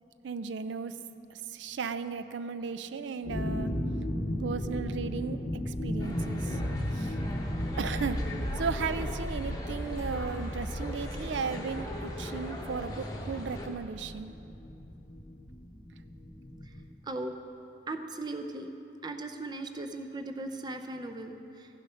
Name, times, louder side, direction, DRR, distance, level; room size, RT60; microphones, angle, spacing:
voice 1, 0.2-0.9 1.5-3.7 4.4-5.4 5.7-6.6 7.0-7.1 7.8-8.2 8.6-14.3, right 5 dB, 90° right, 12 dB, 0.4 m, -35 dB
sound 1, 3.2-16.9, left 1 dB, 45° left, 0.8 m, -35 dB
sound 2, 6.0-13.7, left 1 dB, 20° left, 1.1 m, -39 dB
voice 2, 17.9-18.7 19.0-21.7, right 2 dB, 25° right, 6 dB, 0.5 m, -38 dB
15.5 x 7.1 x 5.6 m, 2.8 s
head